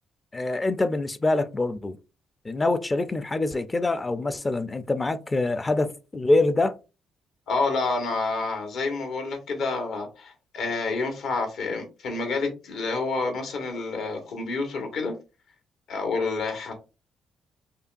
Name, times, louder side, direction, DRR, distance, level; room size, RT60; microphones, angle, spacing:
voice 1, 0.3-2.0 2.4-6.8, left 2 dB, 25° left, 0.4 m, -25 dB
voice 2, 7.5-15.1 15.9-16.7, left 3 dB, 75° left, 1.4 m, -28 dB
5.3 x 2.3 x 2.5 m
cardioid pair, 90°, 0 cm